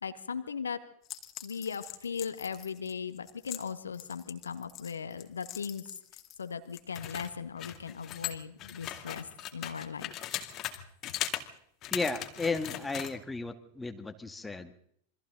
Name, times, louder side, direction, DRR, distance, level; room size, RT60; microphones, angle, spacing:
voice 1, 0.0-0.8 1.4-5.8 6.4-10.1, left 6 dB, 70° left, 10 dB, 1.6 m, -38 dB
sound 1, 1.0-6.4 6.7-10.8 11.0-11.5 11.8-13.1, left 12 dB, 35° left, 2.3 m, -40 dB
voice 2, 11.9-14.7, left 3 dB, 10° left, 7 dB, 2.0 m, -34 dB
28.0 x 24.5 x 3.9 m, 0.68 s
figure-of-eight pair, 90°, 0 cm